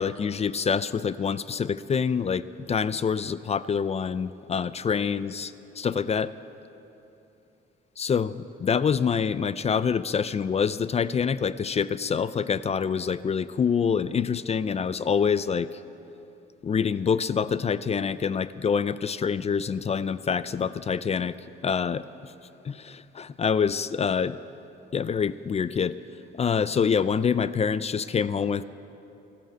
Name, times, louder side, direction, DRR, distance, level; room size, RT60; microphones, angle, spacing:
voice 1, 0.0-6.3 8.0-15.8 16.6-21.3 21.6-22.3 22.6-24.4 24.9-26.0 26.3-28.6, left 6 dB, 30° left, 16 dB, 0.4 m, -26 dB
14.0 x 13.0 x 7.9 m, 2.9 s
cardioid pair, 90°, 20 cm